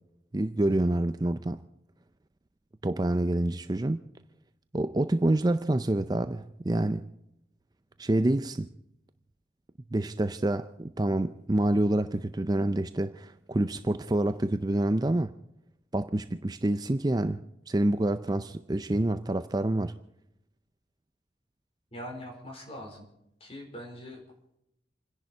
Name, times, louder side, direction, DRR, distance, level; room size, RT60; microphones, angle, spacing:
voice 1, 0.3-1.6 2.8-4.0 4.7-7.1 8.0-8.7 9.9-15.3 15.9-19.9, right 1 dB, 20° right, 11 dB, 0.5 m, -27 dB
voice 2, 21.9-23.1 23.4-24.2, equal, 35° left, 1 dB, 4.7 m, -42 dB
28.0 x 11.0 x 4.5 m, 0.81 s
head